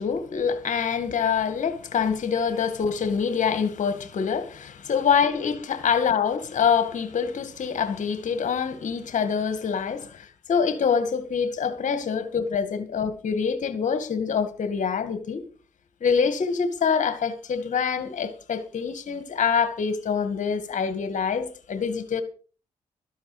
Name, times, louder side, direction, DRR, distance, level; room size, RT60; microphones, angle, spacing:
voice 1, 0.0-15.4 16.0-22.2, left 6 dB, 65° left, 2.2 m, -25 dB
13.0 x 12.0 x 5.0 m
cardioid pair, 70°, 14 cm